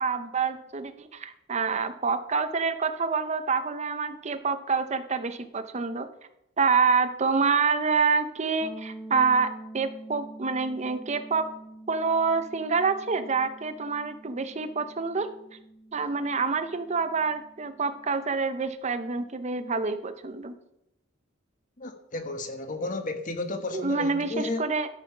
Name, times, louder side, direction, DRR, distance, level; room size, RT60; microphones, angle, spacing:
voice 1, 0.0-6.1 6.6-11.5 11.9-15.3 15.9-20.6 23.7-24.9, right 5 dB, 35° right, 0.7 m, -27 dB
sound 1, 8.6-18.3, right 1 dB, ahead, 1.4 m, -46 dB
voice 2, 21.8-24.7, left 2 dB, 40° left, 1.2 m, -33 dB
13.0 x 5.7 x 5.8 m
head